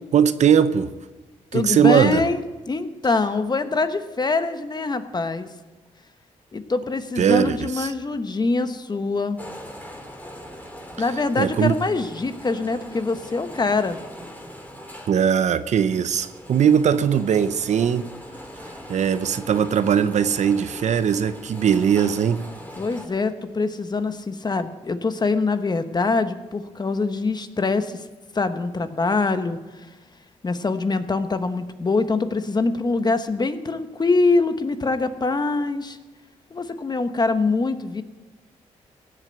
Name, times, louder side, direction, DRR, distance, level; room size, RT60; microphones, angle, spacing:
voice 1, 0.1-0.9 1.5-2.2 7.2-7.9 11.4-11.8 15.1-18.1 18.9-22.4, right 8 dB, 65° right, 0.8 m, -20 dB
voice 2, 1.5-5.5 6.5-9.4 11.0-14.0 22.8-28.0 28.3-29.6 30.4-36.0 36.5-38.0, left 3 dB, 35° left, 1.1 m, -24 dB
sound 1, 9.4-23.1, equal, 15° left, 3.0 m, -41 dB
16.0 x 7.7 x 7.8 m
cardioid pair, 65°, 13 cm